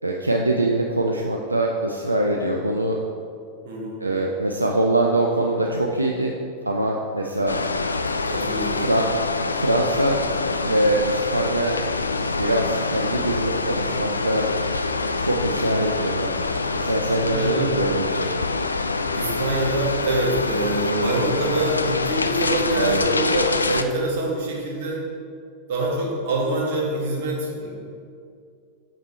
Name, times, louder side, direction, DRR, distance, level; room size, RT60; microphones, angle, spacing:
voice 1, 0.0-3.0 4.0-6.3 6.7-7.5 8.7-9.0 9.5-10.2 10.6-11.8 12.3-14.5 15.2-16.4 16.7-18.3 22.7-23.0, right 1 dB, 85° right, 0 dB, 0.5 m, -23 dB
voice 2, 3.7-4.0 8.3-8.9 17.1-17.7 19.1-25.1 25.7-27.7, right 2 dB, 55° right, -3 dB, 1.8 m, -25 dB
sound 1, 7.5-23.8, left 3 dB, 80° left, 0.3 m, -25 dB
6.9 x 5.9 x 4.3 m, 2.4 s
figure-of-eight pair, 90°, 0 cm